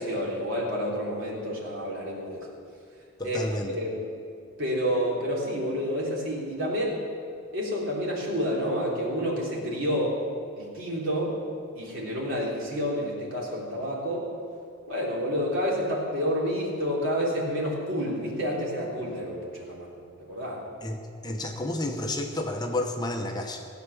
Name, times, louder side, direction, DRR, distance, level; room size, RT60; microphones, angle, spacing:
voice 1, 0.0-2.5 3.2-3.4 3.8-4.0 4.6-7.0 7.5-10.2 10.6-11.4 11.8-14.3 14.9-19.9 20.2-20.6, equal, 65° right, -4 dB, 3.5 m, -29 dB
voice 2, 3.2-3.8 20.8-21.0 21.2-23.7, left 1 dB, 20° left, 3 dB, 0.9 m, -30 dB
17.0 x 8.1 x 7.0 m, 2.4 s
head